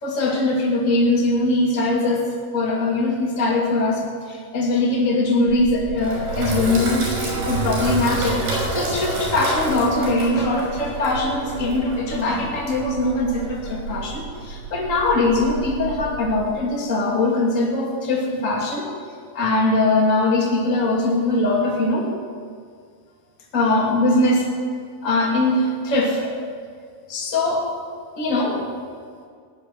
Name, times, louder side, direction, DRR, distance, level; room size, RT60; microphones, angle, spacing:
voice 1, 0.0-7.0 7.5-18.9 19.3-22.1 23.5-24.5 25.0-26.3 27.1-27.7 28.2-28.6, left 2 dB, 25° left, -2 dB, 2.1 m, -21 dB
Sink (filling or washing), 5.5-16.5, right 2 dB, 60° right, 7.4 m, -29 dB
17.0 x 8.3 x 9.3 m, 2.1 s
omnidirectional pair, 4.9 m